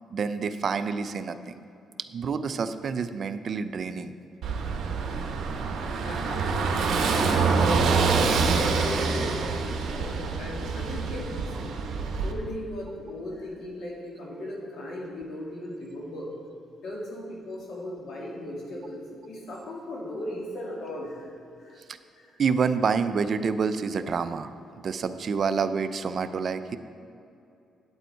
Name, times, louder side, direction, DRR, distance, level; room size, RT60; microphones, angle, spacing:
voice 1, 0.1-1.6 2.1-4.1 22.4-24.6 24.8-26.8, right 5 dB, 50° right, 11 dB, 0.4 m, -28 dB
Car passing by / Engine, 4.4-12.3, right 4 dB, 70° right, 0.9 m, -26 dB
voice 2, 6.0-11.9 12.2-16.3 16.8-21.3 21.6-21.8 22.1-22.4, left 1 dB, 70° left, -3 dB, 2.3 m, -37 dB
8.7 x 8.1 x 4.5 m, 2.6 s
cardioid pair, 90°, 0 cm